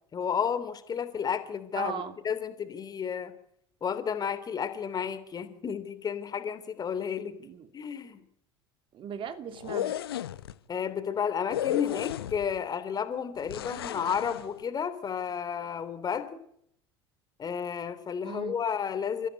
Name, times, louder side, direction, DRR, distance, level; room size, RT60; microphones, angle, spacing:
voice 1, 0.1-3.3 3.8-7.4 7.7-8.2 10.7-16.4 17.4-19.3, left 7 dB, 30° left, 3.1 m, -32 dB
voice 2, 1.8-2.2 7.4-7.7 8.9-10.0 18.2-18.6, right 8 dB, 40° right, 2.9 m, -38 dB
sound 1, 9.5-10.5 11.5-12.6 13.5-14.5, left 11 dB, 70° left, 0.9 m, -33 dB
30.0 x 15.0 x 9.8 m
figure-of-eight pair, 65°, 13 cm